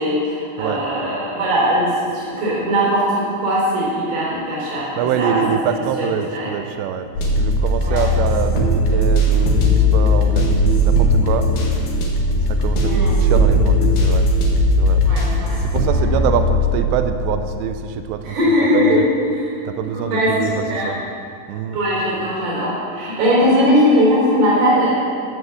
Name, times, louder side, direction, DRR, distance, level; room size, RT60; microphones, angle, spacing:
voice 1, 0.0-4.9 5.2-6.5 7.8-8.0 12.9-13.2 15.1-15.6 18.2-19.5 20.1-20.9 21.7-24.9, equal, 55° right, -5 dB, 5.8 m, -19 dB
voice 2, 5.0-7.1 7.4-11.5 12.5-14.3 14.8-15.0 15.6-19.1 19.7-21.0 21.5-21.8, right 8 dB, 90° right, 8 dB, 2.5 m, -25 dB
sound 1, 7.2-16.7, left 1 dB, 60° left, 2.9 m, -17 dB
14.0 x 8.0 x 7.3 m, 2.7 s
omnidirectional pair, 5.7 m